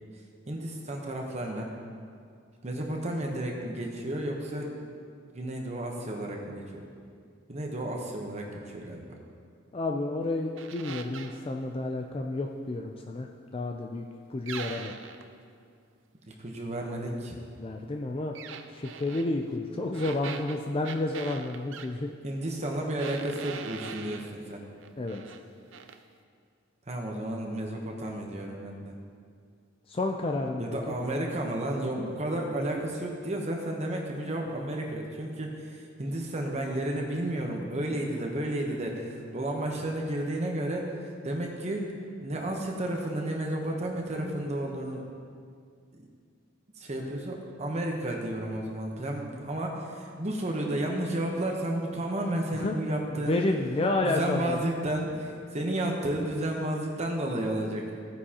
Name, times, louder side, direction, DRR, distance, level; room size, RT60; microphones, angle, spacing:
voice 1, 0.5-1.7 2.6-4.7 5.3-6.9 7.5-9.0 16.2-17.4 22.2-24.6 26.9-28.9 30.6-41.9 42.2-45.0 45.9-46.1 46.8-53.4 54.0-57.9, right 1 dB, 35° right, 0 dB, 0.9 m, -32 dB
voice 2, 9.7-14.0 14.3-14.9 17.6-18.4 18.7-22.1 25.0-25.2 29.9-31.0 52.5-52.8 53.3-54.6, left 2 dB, 30° left, 2 dB, 0.4 m, -30 dB
sound 1, 10.6-11.4 14.5-15.3 18.3-19.3 19.9-21.9 23.0-24.3 24.8-25.4 25.7-26.0, right 6 dB, 70° right, 0.5 m, -41 dB
15.0 x 9.5 x 2.9 m, 2.2 s
head